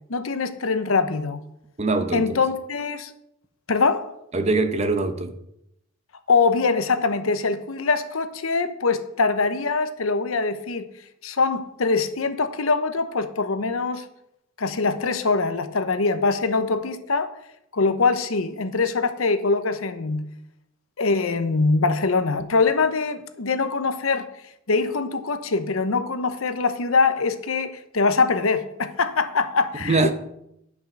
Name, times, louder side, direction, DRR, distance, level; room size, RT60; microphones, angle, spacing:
voice 1, 0.1-1.4 2.1-3.1 3.7-4.1 6.3-10.9 11.2-14.1 14.6-17.3 17.7-20.2 21.0-24.3 24.7-30.1, left 4 dB, 85° left, 0.9 m, -23 dB
voice 2, 1.8-2.4 4.3-5.4 29.8-30.1, right 3 dB, 30° right, 0.8 m, -22 dB
10.5 x 6.1 x 6.0 m
head